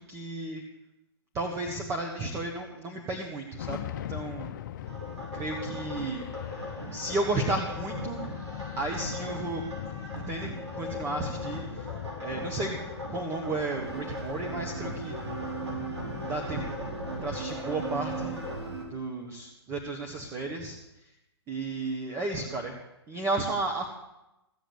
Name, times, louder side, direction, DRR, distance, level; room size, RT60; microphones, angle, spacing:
voice 1, 0.1-0.6 1.3-4.5 5.3-6.3 6.9-8.2 8.8-9.6 10.0-11.9 12.2-12.8 13.1-15.1 16.3-16.8 17.2-18.4 18.9-21.1 21.5-22.8 23.1-23.8, right 2 dB, 20° right, 1 dB, 1.6 m, -33 dB
sound 1, 3.6-16.4, left 12 dB, 45° left, 0.7 m, -41 dB
sound 2, 4.8-18.5, equal, 85° right, 6.7 m, -39 dB
sound 3, 13.8-18.9, right 4 dB, 70° right, 3.9 m, -38 dB
15.5 x 7.8 x 8.5 m, 0.93 s
figure-of-eight pair, 120°, 14 cm